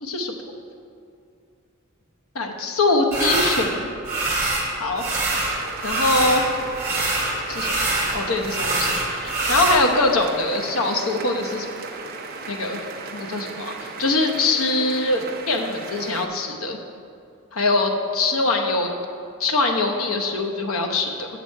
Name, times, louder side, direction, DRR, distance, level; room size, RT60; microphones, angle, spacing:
voice 1, 0.0-0.3 2.3-3.9 4.7-5.0 5.8-6.5 7.5-7.9 8.1-11.7 12.5-12.8 13.1-16.8 17.5-18.9 19.4-21.3, left 2 dB, 90° left, 2 dB, 0.8 m, -23 dB
sound 1, 3.1-3.7 4.0-4.7 5.0-6.5 6.7-9.8, right 2 dB, 10° right, 1.5 m, -24 dB
sound 2, 5.3-16.3, right 4 dB, 45° right, 0.6 m, -36 dB
7.4 x 7.0 x 4.5 m, 2.5 s
head